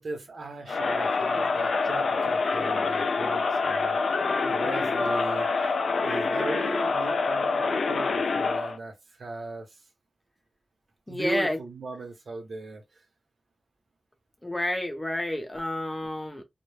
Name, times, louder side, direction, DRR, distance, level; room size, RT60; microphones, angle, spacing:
voice 1, 0.0-4.0 4.4-5.7 6.0-9.8 11.1-13.0, right 3 dB, 70° right, 0.7 m, -37 dB
Crowd, 0.7-8.8, left 4 dB, 80° left, 0.3 m, -26 dB
voice 2, 11.1-11.6 14.4-16.4, left 1 dB, 15° left, 0.7 m, -29 dB
2.1 x 2.0 x 3.1 m
wide cardioid pair, 85°, 0 cm